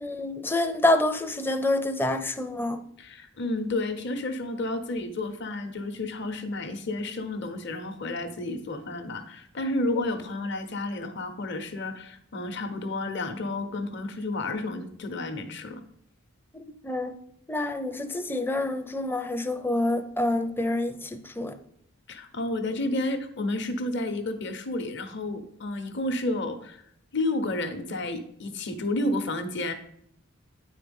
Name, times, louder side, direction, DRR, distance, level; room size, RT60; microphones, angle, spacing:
voice 1, 0.0-2.8 16.5-17.1 17.5-21.1 21.4-21.5, left 2 dB, 10° left, 0.5 m, -27 dB
voice 2, 3.0-15.8 22.1-26.8 27.1-29.7, left 2 dB, 55° left, 0.9 m, -31 dB
9.5 x 4.5 x 5.3 m
head